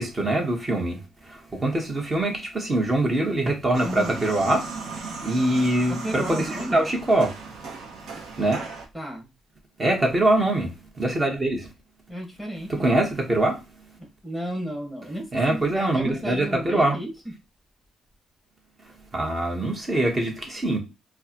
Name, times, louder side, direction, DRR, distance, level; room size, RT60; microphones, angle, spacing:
voice 1, 0.0-7.4 8.0-8.6 9.8-11.7 12.7-13.6 15.3-17.0 19.1-20.8, right 1 dB, 30° right, 1.3 m, -24 dB
sound 1, 3.7-8.9, right 4 dB, 70° right, 0.9 m, -36 dB
voice 2, 3.8-4.3 5.9-6.9 8.9-9.3 12.1-12.9 14.0-17.1, equal, 5° right, 1.6 m, -33 dB
4.5 x 2.3 x 2.9 m
cardioid pair, 90°, 0 cm